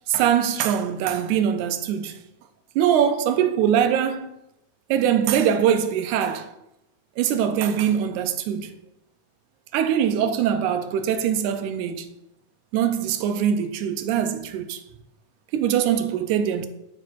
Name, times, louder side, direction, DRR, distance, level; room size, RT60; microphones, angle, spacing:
voice 1, 0.1-2.2 2.8-4.3 4.9-6.5 7.2-8.7 9.7-12.1 12.7-14.8 15.5-16.7, right 9 dB, 90° right, 2.0 m, -22 dB
9.9 x 4.4 x 2.4 m
omnidirectional pair, 3.4 m